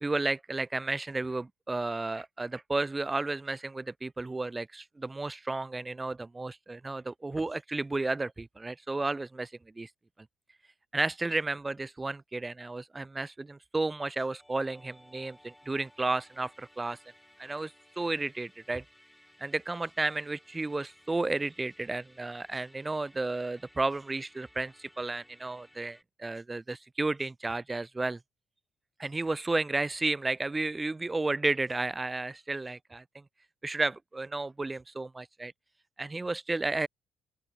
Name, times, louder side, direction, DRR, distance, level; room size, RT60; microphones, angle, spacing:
voice 1, 0.0-9.5 9.8-9.9 10.9-17.0 17.4-18.8 19.4-28.2 29.0-33.2 33.6-35.5 36.0-36.9, right 2 dB, 20° right, 0.3 m, -32 dB
Musical instrument, 14.4-26.0, equal, 5° left, 1.4 m, -60 dB
open air
hypercardioid pair, 50°, 0 cm